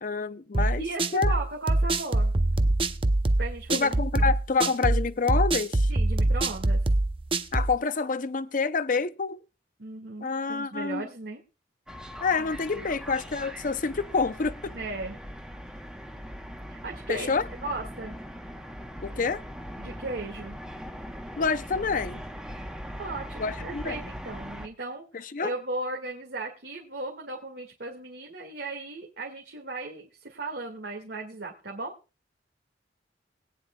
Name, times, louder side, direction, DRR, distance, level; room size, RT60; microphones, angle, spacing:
voice 1, 0.0-0.9 1.1-1.3 3.7-5.9 7.5-9.4 10.2-11.1 12.2-14.8 17.1-17.4 19.0-19.4 21.4-22.2 23.4-24.0 25.2-25.5, left 4 dB, 45° left, 0.6 m, -27 dB
sound 1, 0.5-7.8, right 2 dB, 30° right, 0.6 m, -24 dB
voice 2, 0.6-2.3 3.4-4.3 5.9-6.8 9.8-11.4 12.4-13.0 14.7-15.2 16.7-18.2 19.8-20.6 23.0-31.9, right 2 dB, 70° right, 2.0 m, -36 dB
sound 2, 11.9-24.7, equal, 5° right, 1.0 m, -40 dB
20.5 x 9.7 x 2.3 m
head